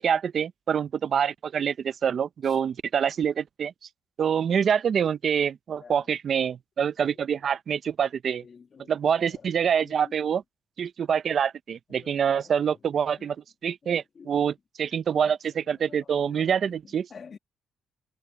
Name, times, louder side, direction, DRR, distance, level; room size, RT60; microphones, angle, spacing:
voice 1, 0.0-3.7 4.2-8.4 8.9-10.4 10.8-13.4 13.6-17.1, right 7 dB, 55° right, 0.7 m, -26 dB
voice 2, 5.7-6.1 8.4-9.4 9.8-10.1 11.9-12.7 13.2-13.3 13.8-14.4 15.9-16.7 17.1-17.4, left 6 dB, 45° left, 2.1 m, -49 dB
cardioid pair, 90°, 0 cm